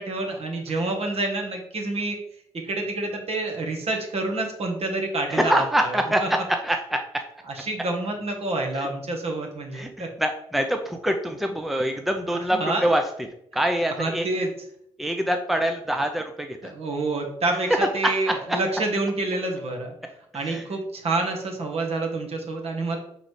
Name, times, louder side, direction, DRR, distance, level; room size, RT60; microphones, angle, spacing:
voice 1, 0.0-2.2 2.6-6.3 7.5-10.1 12.5-12.9 14.0-14.5 16.6-19.9 20.3-23.0, right 2 dB, 55° right, 1 dB, 1.7 m, -28 dB
voice 2, 5.3-7.0 8.8-8.9 9.7-13.0 13.5-14.3 15.0-16.7 17.7-17.8 18.3-18.4 20.5-20.6, right 1 dB, ahead, 4 dB, 0.7 m, -25 dB
4.8 x 3.8 x 5.1 m, 0.73 s
hypercardioid pair, 45°, 13 cm